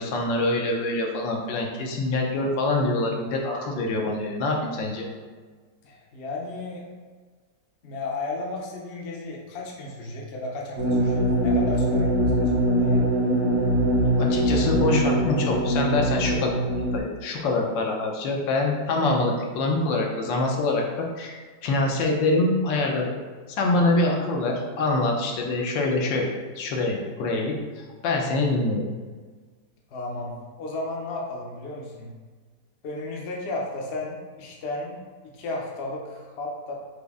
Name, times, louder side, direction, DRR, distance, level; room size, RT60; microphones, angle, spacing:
voice 1, 0.0-5.0 14.2-16.6 16.9-23.1 23.5-28.8, left 2 dB, 85° left, 0 dB, 1.4 m, -25 dB
voice 2, 5.8-6.8 7.8-13.1 29.9-32.1 32.8-36.7, left 2 dB, 60° left, -1 dB, 0.7 m, -34 dB
sound 1, 10.8-17.0, equal, 50° right, 0.8 m, -22 dB
5.1 x 2.0 x 3.4 m, 1.5 s
omnidirectional pair, 1.9 m